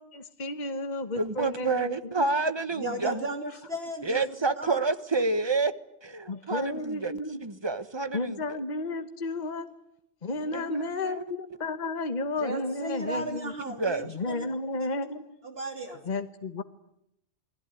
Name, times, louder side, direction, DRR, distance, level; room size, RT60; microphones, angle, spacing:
voice 1, 0.0-2.1 6.3-7.4 8.1-9.7 10.2-13.5 14.0-15.2 16.0-16.6, left 2 dB, 40° left, 8 dB, 1.3 m, -32 dB
voice 2, 1.2-3.3 4.0-5.7 6.0-7.1 7.4-8.4 10.5-11.2 13.0-13.1 13.6-14.1, right 3 dB, 25° right, 12 dB, 1.3 m, -29 dB
voice 3, 2.8-4.2 4.6-4.8 10.4-10.8 12.4-14.5 14.7-14.9 15.4-16.0, right 2 dB, 55° right, 4 dB, 3.4 m, -35 dB
29.0 x 20.5 x 9.9 m, 0.79 s
omnidirectional pair, 1.2 m